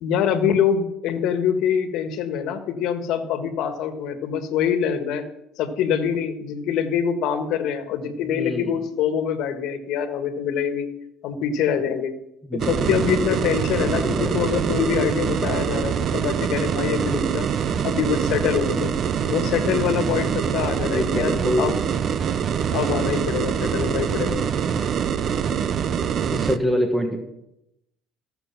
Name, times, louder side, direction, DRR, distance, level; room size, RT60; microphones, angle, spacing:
voice 1, 0.0-5.2 5.6-10.9 11.2-12.1 12.5-17.5 17.8-18.9 19.3-21.8 22.7-24.5, left 8 dB, 70° left, 7 dB, 1.5 m, -24 dB
voice 2, 8.2-8.7 12.5-13.0 13.9-14.3 20.9-21.6 26.3-27.2, equal, 5° right, 3 dB, 1.4 m, -25 dB
sound 1, 12.6-26.6, right 7 dB, 45° right, 0.6 m, -24 dB
14.5 x 6.9 x 5.7 m, 0.84 s
cardioid pair, 110°, 0 cm